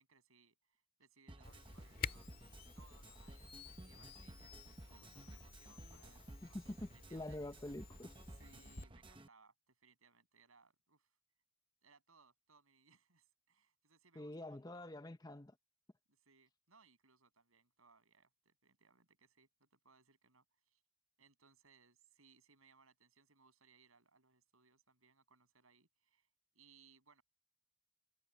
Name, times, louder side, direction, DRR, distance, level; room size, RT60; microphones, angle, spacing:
voice 1, 0.0-2.3 2.7-7.4 8.3-11.2 11.8-14.9 16.1-20.8 21.2-26.3 26.5-27.2, right 5 dB, 85° right, 7.2 m, -69 dB
sound 1, 1.3-9.3, right 1 dB, 25° right, 0.9 m, -56 dB
Camera, 1.4-8.9, left 6 dB, 45° left, 2.2 m, -51 dB
voice 2, 6.4-8.1 14.2-15.6, left 1 dB, 20° left, 0.7 m, -47 dB
head